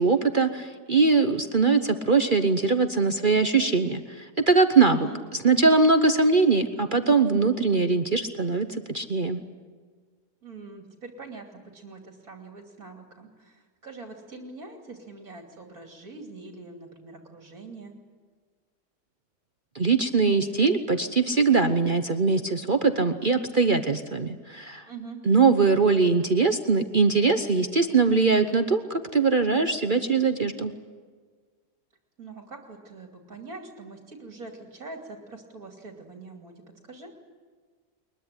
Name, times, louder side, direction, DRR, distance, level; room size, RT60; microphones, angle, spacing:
voice 1, 0.0-5.1 5.4-9.4 19.7-24.9 25.3-30.7, right 4 dB, 40° right, 8 dB, 0.9 m, -22 dB
voice 2, 4.9-5.2 10.4-17.9 24.9-25.2 32.2-37.1, right 3 dB, 55° right, 2 dB, 3.2 m, -43 dB
23.0 x 21.5 x 9.7 m, 1.5 s
omnidirectional pair, 1.7 m